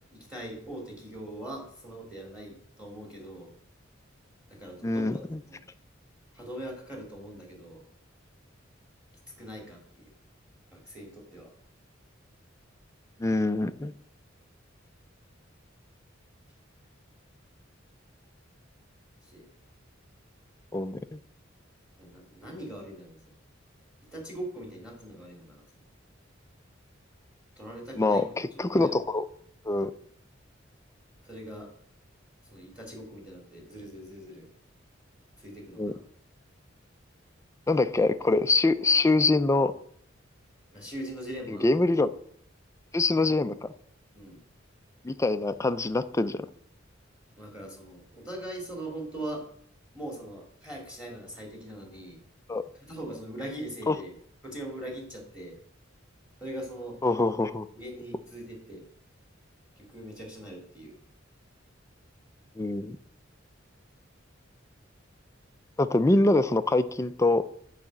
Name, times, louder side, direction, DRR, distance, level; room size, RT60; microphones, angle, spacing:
voice 1, 0.1-3.5 4.5-5.6 6.3-7.8 9.4-10.1 10.7-11.5 19.2-19.5 22.0-23.3 24.1-25.7 27.6-28.4 28.7-29.0 31.2-31.7 32.5-34.5 35.4-36.1 40.7-41.7 44.1-44.4 47.4-49.4 49.9-52.2 52.8-54.1 54.4-55.6 56.4-57.0 57.7-58.8 59.8-61.0, right 1 dB, 5° right, 2.2 m, -41 dB
voice 2, 4.8-5.1 13.2-13.9 20.7-21.2 28.0-29.2 29.7-29.9 35.8-35.9 37.7-39.7 41.5-42.1 42.9-43.7 45.0-46.4 52.5-52.6 53.9-54.0 57.0-57.7 62.6-63.0 65.8-67.5, left 2 dB, 15° left, 0.4 m, -24 dB
9.6 x 4.9 x 7.4 m
head